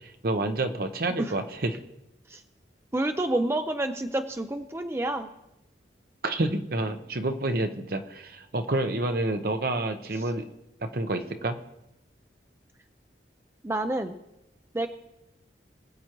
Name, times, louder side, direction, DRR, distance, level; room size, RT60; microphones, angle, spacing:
voice 1, 0.0-1.8 6.2-10.5 10.8-11.6, right 2 dB, 55° right, 7 dB, 0.8 m, -29 dB
voice 2, 2.9-5.3 13.6-14.2 14.7-14.9, right 1 dB, 15° right, 7 dB, 0.5 m, -28 dB
23.5 x 7.8 x 3.0 m, 0.89 s
head